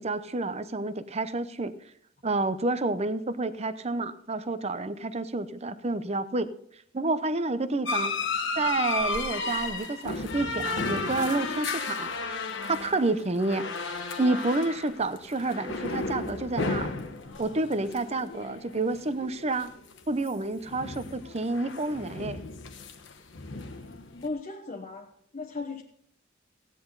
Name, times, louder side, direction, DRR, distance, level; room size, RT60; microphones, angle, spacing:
voice 1, 0.0-1.7 2.2-6.5 6.9-8.1 8.6-12.1 12.7-13.6 14.2-16.9 17.4-19.7 20.1-22.4, right 2 dB, 35° right, 13 dB, 0.7 m, -29 dB
sound 1, 7.8-20.3 20.6-24.3, left 3 dB, 65° left, 1.2 m, -34 dB
voice 2, 24.2-25.8, left 3 dB, 40° left, -1 dB, 1.1 m, -36 dB
16.0 x 10.0 x 3.9 m, 0.65 s
head